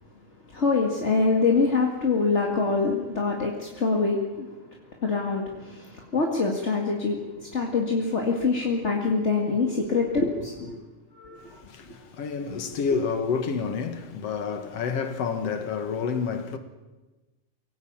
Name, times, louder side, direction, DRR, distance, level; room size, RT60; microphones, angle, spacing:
voice 1, 0.5-4.5 5.0-10.8 11.2-11.6, left 4 dB, 25° left, 1.8 m, -25 dB
voice 2, 11.4-16.6, left 5 dB, 55° left, 2.3 m, -29 dB
24.5 x 18.0 x 8.9 m
omnidirectional pair, 3.7 m